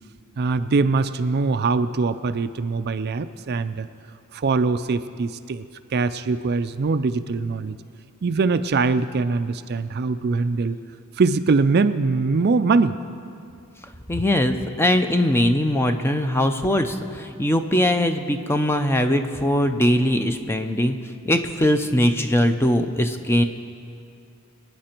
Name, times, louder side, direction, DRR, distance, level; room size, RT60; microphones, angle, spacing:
voice 1, 0.4-3.9 4.3-5.6 5.9-7.8 8.2-10.8 11.2-13.0, right 4 dB, 45° right, 11 dB, 0.4 m, -22 dB
voice 2, 14.1-21.0 21.2-23.4, left 1 dB, 10° left, 7 dB, 0.6 m, -21 dB
25.0 x 9.6 x 4.5 m, 2.4 s
head